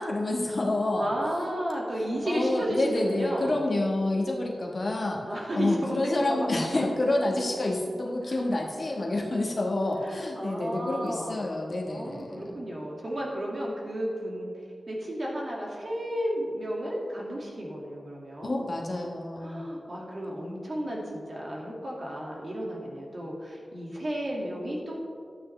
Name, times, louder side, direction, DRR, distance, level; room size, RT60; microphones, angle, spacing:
voice 1, 0.0-1.1 2.2-5.2 5.5-12.5 18.4-19.6, left 2 dB, 45° left, -1 dB, 1.2 m, -28 dB
voice 2, 1.0-3.6 5.2-6.9 8.3-8.4 10.0-11.5 11.9-14.5 14.9-18.6 19.4-24.9, equal, 45° right, -3 dB, 2.0 m, -33 dB
12.0 x 8.7 x 3.3 m, 2.2 s
wide cardioid pair, 115°, 0 cm